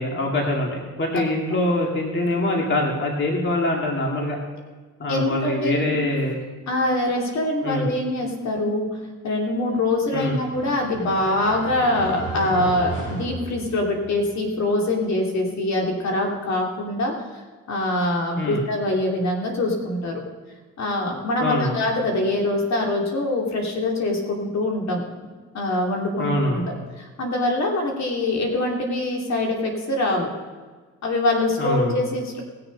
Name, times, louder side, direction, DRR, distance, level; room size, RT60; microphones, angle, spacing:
voice 1, 0.0-4.4 5.0-6.4 7.6-7.9 10.1-10.4 18.4-18.6 21.4-21.8 26.2-26.6 31.6-32.0, left 1 dB, 40° left, 0 dB, 2.5 m, -24 dB
voice 2, 5.1-6.2 6.7-8.9 9.2-17.4 17.7-20.2 20.8-25.0 25.5-26.6 27.0-30.3 31.0-32.4, left 2 dB, 65° left, 0 dB, 2.9 m, -24 dB
sound 1, 9.8-14.2, right 1 dB, 80° left, 3.9 m, -34 dB
19.0 x 6.9 x 5.4 m, 1.4 s
cardioid pair, 90°, 30 cm